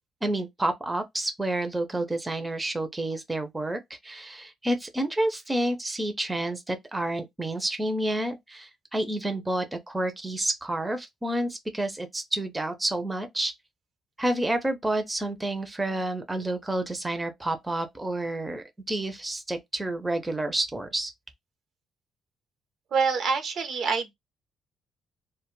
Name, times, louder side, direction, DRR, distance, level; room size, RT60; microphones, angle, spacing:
voice 1, 0.2-13.5 14.2-21.1, right 1 dB, 15° right, 0.5 m, -29 dB
voice 2, 22.9-24.1, right 5 dB, 60° right, 0.6 m, -26 dB
2.1 x 2.0 x 3.0 m
cardioid pair, 90°, 0 cm